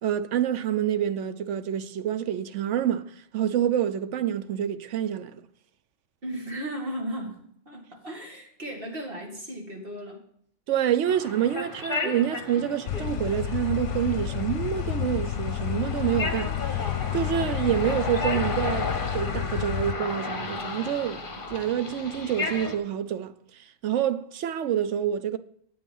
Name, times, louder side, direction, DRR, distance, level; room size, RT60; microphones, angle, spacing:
voice 1, 0.0-5.4 10.7-25.4, right 10 dB, 85° right, 1.0 m, -27 dB
voice 2, 6.2-10.2 12.5-12.7, equal, 50° right, 2.5 m, -36 dB
sound 1, 11.1-22.8, left 3 dB, 45° left, 1.6 m, -34 dB
sound 2, 12.9-19.9, left 10 dB, 85° left, 0.9 m, -30 dB
8.7 x 8.6 x 5.5 m
omnidirectional pair, 1.2 m